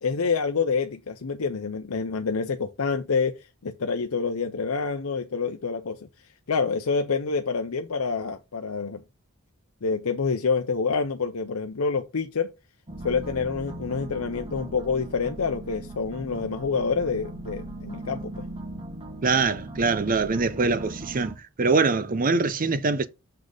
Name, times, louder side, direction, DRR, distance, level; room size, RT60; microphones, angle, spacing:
voice 1, 0.0-3.4 3.6-6.0 6.5-9.0 9.8-12.5 13.0-18.4, left 5 dB, 80° left, 0.7 m, -27 dB
sound 1, 12.9-21.3, right 2 dB, 25° right, 1.4 m, -39 dB
voice 2, 19.2-23.1, right 4 dB, 40° right, 0.6 m, -23 dB
6.6 x 4.1 x 4.9 m
head